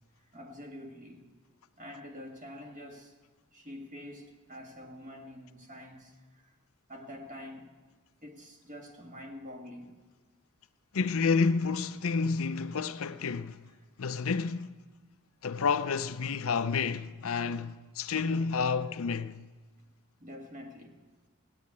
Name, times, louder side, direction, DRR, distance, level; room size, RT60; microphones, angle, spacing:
voice 1, 0.2-1.3 1.8-3.2 3.5-6.6 6.9-7.7 8.2-9.9 20.2-21.0, left 1 dB, 35° right, 1.8 m, -46 dB
voice 2, 10.9-13.6 14.0-14.7 15.4-19.4, left 5 dB, 70° left, 0.5 m, -30 dB
16.5 x 9.8 x 8.5 m
head